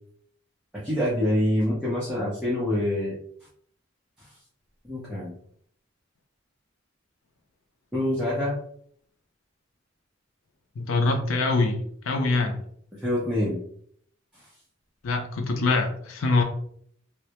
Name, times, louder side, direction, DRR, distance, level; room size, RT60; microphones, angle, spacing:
voice 1, 0.7-3.2 4.2-4.3 4.8-5.4 7.9-8.6 12.9-13.6, left 1 dB, 5° right, -8 dB, 0.5 m, -26 dB
voice 2, 10.8-12.6 15.0-16.4, left 3 dB, 85° left, 4 dB, 0.5 m, -24 dB
2.1 x 2.0 x 2.8 m, 0.64 s
head